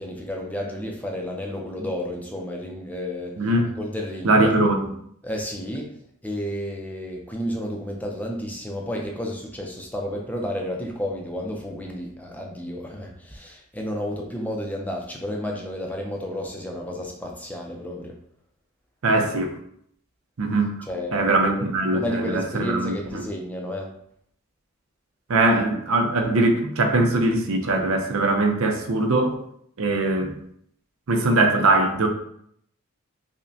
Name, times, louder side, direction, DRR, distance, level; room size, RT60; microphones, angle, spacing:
voice 1, 0.0-3.5 3.8-4.5 5.2-5.9 6.2-18.2 20.8-21.7 21.9-23.9, equal, 5° left, 0 dB, 0.4 m, -31 dB
voice 2, 3.4-3.7 4.2-4.8 19.0-19.5 20.4-20.7 21.1-23.2 25.3-29.3 29.8-30.4 31.1-32.1, right 2 dB, 80° right, 4 dB, 0.6 m, -21 dB
5.2 x 2.1 x 2.6 m, 0.69 s
head